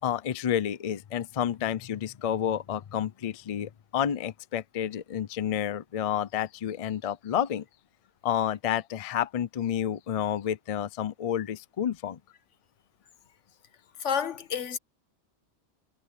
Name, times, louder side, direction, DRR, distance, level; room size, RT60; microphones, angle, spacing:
voice 1, 0.0-7.6 8.2-12.2, left 10 dB, 45° left, 0.5 m, -30 dB
voice 2, 14.0-14.8, left 7 dB, 85° left, 1.4 m, -29 dB
omnidirectional pair, 1.2 m